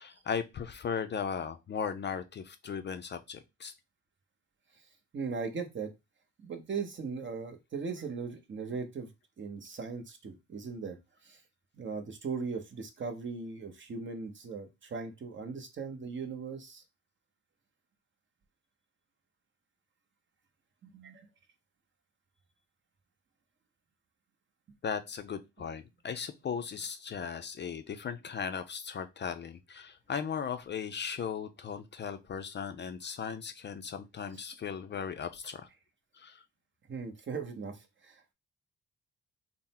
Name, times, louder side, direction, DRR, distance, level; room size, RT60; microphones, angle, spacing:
voice 1, 0.0-3.7 24.8-35.7 36.1-36.4, left 6 dB, 35° left, 0.4 m, -37 dB
voice 2, 5.1-5.9 6.4-9.1 9.4-11.0 11.2-11.4 11.7-16.8 20.8-21.3 36.9-38.3, right 5 dB, 40° right, 0.9 m, -39 dB
3.7 x 2.0 x 4.1 m
cardioid pair, 90°, 30 cm